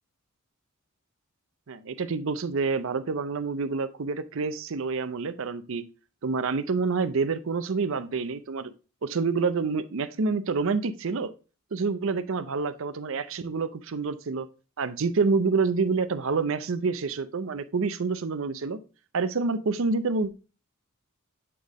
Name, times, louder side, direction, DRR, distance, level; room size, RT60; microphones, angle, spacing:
voice 1, 1.7-5.8 6.2-8.7 9.0-11.3 11.7-14.5 14.8-18.8 19.1-20.3, right 4 dB, 65° right, 12 dB, 0.6 m, -27 dB
8.6 x 3.5 x 3.7 m, 0.33 s
head